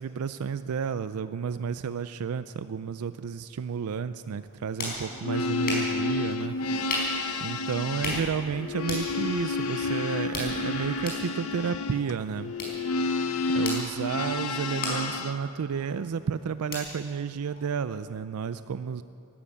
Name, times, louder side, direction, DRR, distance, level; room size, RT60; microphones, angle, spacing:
voice 1, 0.0-6.6 7.4-12.5 13.5-19.0, right 6 dB, 75° right, 13 dB, 0.4 m, -31 dB
sound 1, 4.3-18.1, left 2 dB, 45° left, 4.6 m, -38 dB
sound 2, 4.5-11.2, left 1 dB, 85° left, 3.3 m, -48 dB
sound 3, 5.1-15.4, left 3 dB, 70° left, 0.8 m, -30 dB
13.5 x 12.5 x 8.6 m, 2.5 s
head